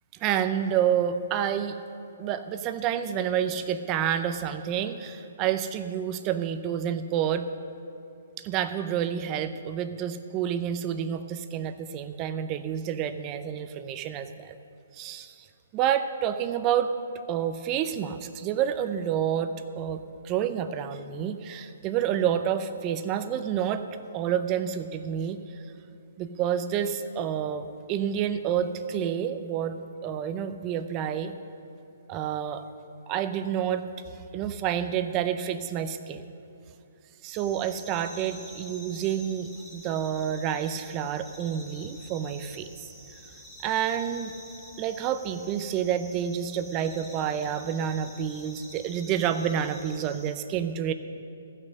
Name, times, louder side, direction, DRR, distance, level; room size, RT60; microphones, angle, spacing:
voice 1, 0.2-1.8 2.2-7.4 8.4-14.5 14.9-15.3 15.7-16.9 17.3-23.8 24.1-25.4 26.2-31.3 32.1-32.6 33.1-33.8 34.3-36.2 37.2-42.7 43.6-44.3 44.8-50.9, right 9 dB, 25° right, 10 dB, 0.6 m, -29 dB
sound 1, 37.3-50.3, equal, 5° left, 1.9 m, -48 dB
15.0 x 6.3 x 6.4 m, 2.7 s
hypercardioid pair, 155°, 0 cm